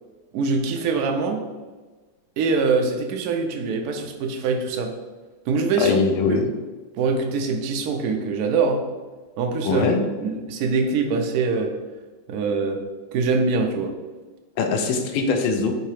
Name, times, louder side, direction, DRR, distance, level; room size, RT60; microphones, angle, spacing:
voice 1, 0.3-1.4 2.4-4.9 5.5-6.0 6.3-6.6 7.0-8.9 9.4-9.9 10.2-11.7 12.3-12.8 13.1-13.9, right 4 dB, 90° right, 3 dB, 0.8 m, -23 dB
voice 2, 5.8-6.4 9.6-10.0 14.6-15.7, left 5 dB, 85° left, 5 dB, 1.4 m, -21 dB
4.0 x 2.8 x 4.6 m, 1.3 s
omnidirectional pair, 2.2 m